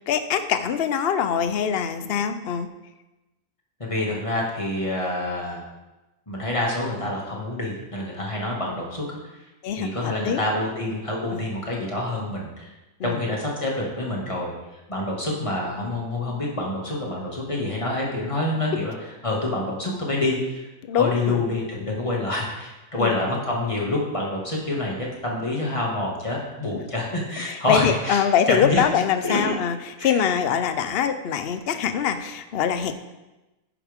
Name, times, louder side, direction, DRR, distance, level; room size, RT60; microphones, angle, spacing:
voice 1, 0.1-2.7 9.6-10.4 11.3-11.4 13.0-13.2 20.9-21.4 23.0-23.1 27.5-29.8 30.0-32.9, left 8 dB, 50° left, 10 dB, 0.8 m, -23 dB
voice 2, 3.8-5.6 6.3-9.0 9.8-12.7 13.0-14.5 14.9-18.9 19.2-20.7 20.9-28.2 28.5-28.8 29.2-29.5 30.0-30.2, left 2 dB, 20° left, -3 dB, 2.2 m, -27 dB
11.0 x 9.5 x 3.7 m, 1.0 s
omnidirectional pair, 1.6 m